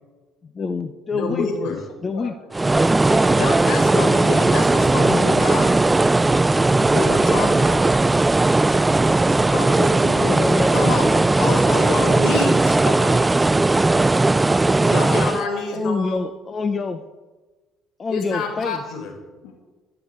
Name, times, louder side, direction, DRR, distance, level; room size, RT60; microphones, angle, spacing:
voice 1, 0.4-1.8 2.0-2.3 10.1-11.3 15.7-17.1 18.0-18.8, left 4 dB, 35° left, 9 dB, 0.8 m, -27 dB
voice 2, 1.1-1.8 3.3-5.8 6.5-7.7 9.5-10.2 10.7-11.1 11.4-13.2 14.8-16.2 18.1-19.1, left 4 dB, 65° left, 2 dB, 4.4 m, -27 dB
voice 3, 2.1-2.5 3.0-3.3 7.3-8.0 14.9-15.8 19.4-19.5, left 6 dB, 85° left, 2 dB, 2.0 m, -38 dB
sound 1, 2.5-15.5, right 2 dB, 15° right, 0.3 m, -17 dB
14.0 x 7.1 x 8.2 m, 1.2 s
supercardioid pair, 80°, 0 cm